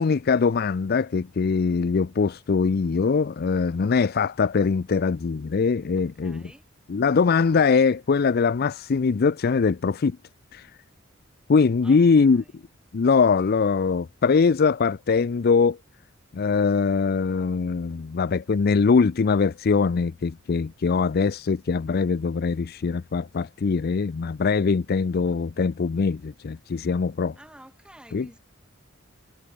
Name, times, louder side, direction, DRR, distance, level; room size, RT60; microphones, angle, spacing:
voice 1, 0.0-6.4 6.9-10.2 10.5-10.7 11.5-12.4 12.9-15.8 16.3-27.3 28.1-28.3, left 5 dB, 50° left, 0.4 m, -22 dB
voice 2, 5.9-6.6 11.8-12.6 27.4-28.4, right 1 dB, 5° right, 4.5 m, -51 dB
head